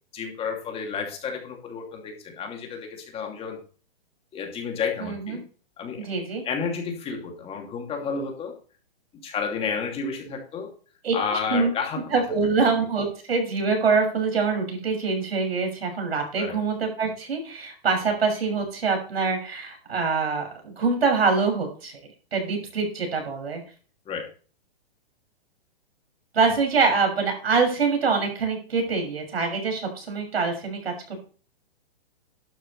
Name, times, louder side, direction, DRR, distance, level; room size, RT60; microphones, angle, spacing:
voice 1, 0.1-3.6 4.3-5.4 5.8-6.1 6.4-8.5 9.2-10.7 11.1-12.0 16.4-16.6 24.1-24.3, left 5 dB, 20° left, 2 dB, 2.7 m, -31 dB
voice 2, 5.0-5.4 6.0-6.4 11.0-11.1 11.5-11.7 12.1-22.0 22.3-23.6 26.3-30.9, right 4 dB, 85° right, 3 dB, 6.7 m, -24 dB
12.0 x 10.0 x 3.3 m, 0.38 s
hypercardioid pair, 140°, 30 cm